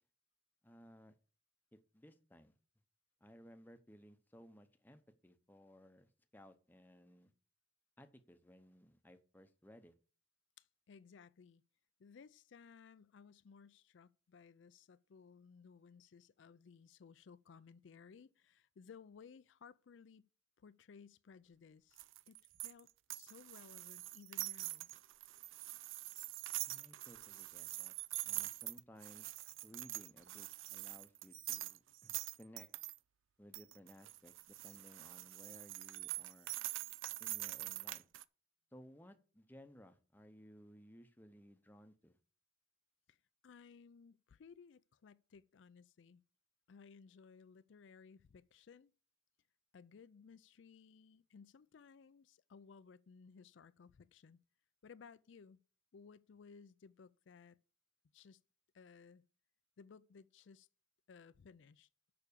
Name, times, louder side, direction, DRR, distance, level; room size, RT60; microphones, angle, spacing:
voice 1, 0.6-1.2 1.7-2.5 3.2-7.3 8.0-9.9 26.6-28.0 28.2-29.3 29.6-32.7 33.4-36.5 37.2-38.0 38.7-42.2, equal, 10° left, 0.7 m, -60 dB
voice 2, 10.6-11.6 12.0-20.2 20.6-22.0 22.3-22.4 22.6-24.9 43.1-43.2 43.4-46.2 46.7-48.9 49.7-54.4 54.8-55.6 55.9-57.6 58.1-58.4 58.7-59.2 59.8-60.7 61.1-61.9, left 5 dB, 70° left, 0.4 m, -59 dB
sound 1, 22.0-33.0 33.5-38.2, right 17 dB, 85° right, 0.4 m, -45 dB
6.8 x 5.9 x 6.8 m
head